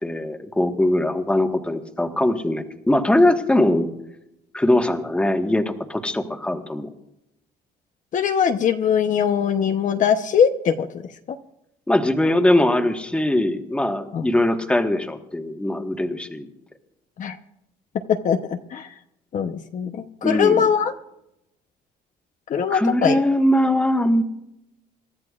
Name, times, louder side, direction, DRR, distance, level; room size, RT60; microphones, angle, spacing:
voice 1, 0.0-3.9 4.5-6.9 11.9-16.5 20.2-20.7 22.7-24.2, left 1 dB, 5° left, 4 dB, 1.5 m, -21 dB
voice 2, 8.1-10.9 14.1-14.3 17.2-17.3 18.1-18.9 19.3-20.9 22.5-23.2, left 7 dB, 50° left, 6 dB, 0.9 m, -21 dB
28.0 x 13.5 x 2.5 m, 0.84 s
cardioid pair, 110°, 17 cm